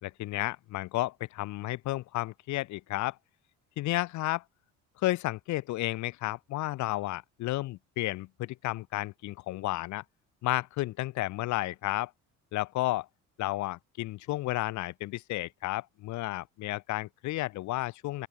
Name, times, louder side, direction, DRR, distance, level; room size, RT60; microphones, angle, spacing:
voice 1, 0.0-3.2 3.8-4.4 5.0-10.0 10.4-12.1 12.5-13.1 13.4-18.3, left 17 dB, 65° left, 1.3 m, -32 dB
open air
cardioid pair, 155°, 31 cm